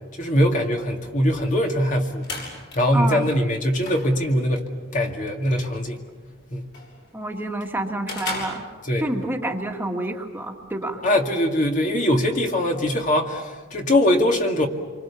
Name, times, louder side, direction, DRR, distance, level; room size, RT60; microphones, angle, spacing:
voice 1, 0.1-2.3 2.7-6.0 6.5-6.7 8.8-9.1 11.0-14.7, left 1 dB, 40° left, 2 dB, 2.2 m, -22 dB
sound 1, 1.9-9.3, left 2 dB, 60° left, 7.4 m, -39 dB
voice 2, 2.9-3.3 7.1-8.6 9.0-11.0, right 1 dB, 10° right, 2 dB, 1.9 m, -28 dB
27.0 x 24.5 x 7.1 m, 1.4 s
head